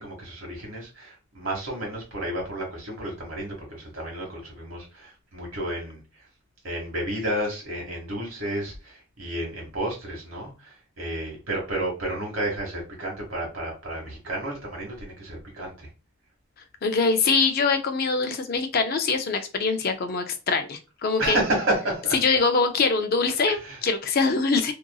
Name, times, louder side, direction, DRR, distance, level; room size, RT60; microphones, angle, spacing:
voice 1, 0.0-6.0 6.6-15.9 21.2-22.1 23.5-23.8, right 1 dB, 65° right, 0 dB, 1.3 m, -31 dB
voice 2, 16.8-21.4 22.2-24.7, left 4 dB, 45° left, 7 dB, 0.4 m, -23 dB
2.8 x 2.5 x 2.2 m, 0.30 s
head